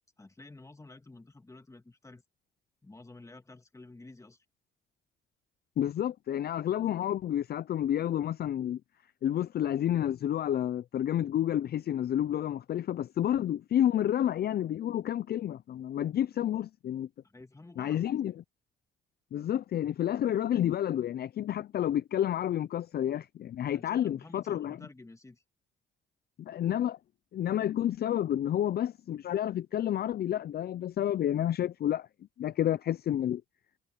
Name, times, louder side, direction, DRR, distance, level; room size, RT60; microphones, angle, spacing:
voice 1, 0.0-2.2 2.8-4.4 17.2-18.0 23.7-25.4, left 2 dB, 15° left, 2.1 m, -51 dB
voice 2, 5.8-8.8 9.2-17.1 17.8-18.4 19.3-24.8 26.4-27.0 27.3-32.1 32.4-33.4, left 11 dB, 50° left, 0.5 m, -30 dB
cardioid pair, 90°, 20 cm